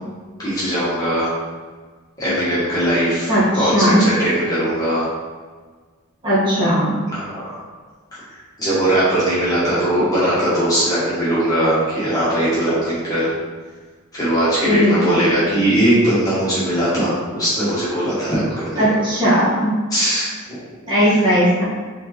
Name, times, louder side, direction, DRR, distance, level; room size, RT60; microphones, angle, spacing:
voice 1, 0.4-1.3 2.2-5.1 7.1-7.6 8.1-8.2 8.6-13.3 14.1-18.8 19.9-20.3, right 1 dB, 15° left, -11 dB, 1.4 m, -19 dB
voice 2, 3.3-4.0 6.2-6.9 14.6-15.4 18.8-19.7 20.8-21.6, equal, 20° right, -11 dB, 1.4 m, -17 dB
4.3 x 3.4 x 3.0 m, 1.4 s
head